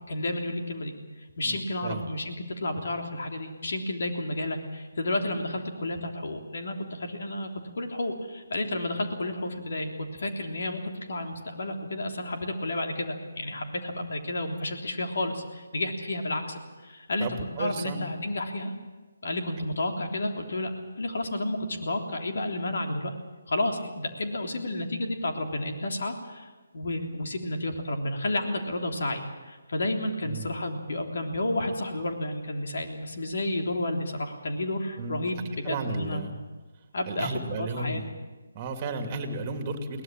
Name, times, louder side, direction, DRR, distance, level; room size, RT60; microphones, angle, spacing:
voice 1, 0.1-0.9 1.4-7.5 7.7-10.8 11.1-17.3 17.6-18.7 19.2-20.7 21.0-23.1 23.5-36.2 36.9-38.0, left 1 dB, 60° left, 3 dB, 3.3 m, -31 dB
voice 2, 17.2-18.0 30.2-30.5 35.0-35.3 35.6-36.4 37.1-38.1 38.5-40.0, right 3 dB, 25° right, 6 dB, 2.6 m, -34 dB
22.0 x 18.5 x 7.6 m, 1.3 s
figure-of-eight pair, 150°, 0 cm